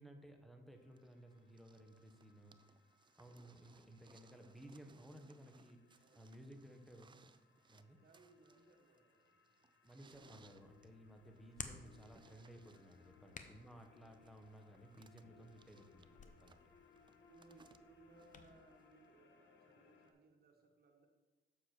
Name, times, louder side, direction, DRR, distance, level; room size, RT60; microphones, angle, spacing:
voice 1, 0.0-2.6 3.2-7.2 7.7-8.0 9.8-16.6, right 1 dB, ahead, 4 dB, 1.2 m, -58 dB
sound 1, 0.7-20.1, left 6 dB, 70° left, 1.1 m, -70 dB
sound 2, 1.0-19.1 20.1-20.2, right 5 dB, 25° right, 0.4 m, -69 dB
voice 2, 6.0-6.3 8.0-9.7 13.1-13.4 17.0-21.1, right 3 dB, 50° right, 3 dB, 1.6 m, -66 dB
Hands, 10.1-18.5, left 5 dB, 40° left, 0.8 m, -57 dB
7.2 x 6.9 x 4.5 m, 1.1 s
cardioid pair, 90°, 20 cm